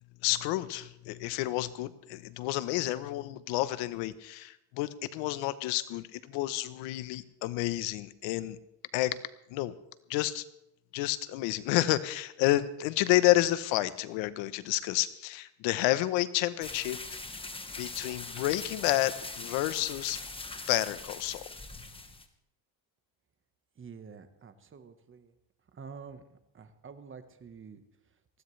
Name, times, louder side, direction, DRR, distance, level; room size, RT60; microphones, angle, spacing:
voice 1, 0.2-8.6 8.9-9.1 9.5-9.7 10.1-10.4 10.9-17.0 17.8-20.2 20.7-21.4, left 16 dB, 80° left, 14 dB, 1.0 m, -30 dB
sound 1, 16.6-22.3, left 3 dB, 10° left, 1.3 m, -42 dB
voice 2, 23.8-25.3 25.7-27.8, right 6 dB, 25° right, 9 dB, 1.3 m, -48 dB
19.5 x 15.5 x 3.3 m, 0.83 s
cardioid pair, 110°, 44 cm